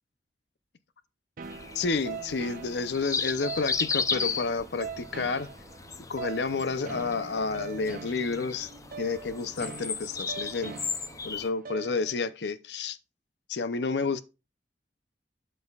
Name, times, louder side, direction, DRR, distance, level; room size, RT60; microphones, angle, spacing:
sound 1, 1.4-11.5, left 5 dB, 20° left, 0.5 m, -35 dB
sound 2, 1.4-12.3, right 5 dB, 50° right, 0.4 m, -43 dB
voice 1, 1.7-5.5 6.1-8.7 9.0-10.7 11.2-13.0 13.5-14.2, left 4 dB, 70° left, 0.6 m, -30 dB
12.0 x 5.4 x 2.4 m
head